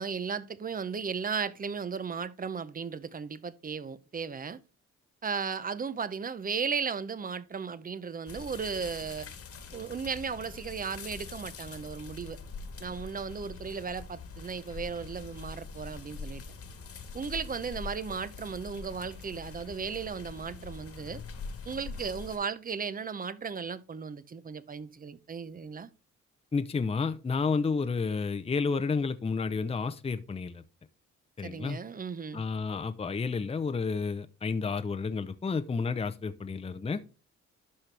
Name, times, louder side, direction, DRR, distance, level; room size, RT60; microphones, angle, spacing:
voice 1, 0.0-4.6 5.2-9.3 9.7-12.4 12.8-16.4 17.1-21.2 21.6-25.9 31.4-32.4, right 6 dB, 30° right, 0.7 m, -35 dB
sound 1, 8.3-22.4, left 4 dB, 50° left, 1.6 m, -44 dB
voice 2, 26.5-30.6 31.4-31.8 32.3-37.0, left 4 dB, 20° left, 0.7 m, -31 dB
12.0 x 4.3 x 3.3 m
cardioid pair, 90°, 30 cm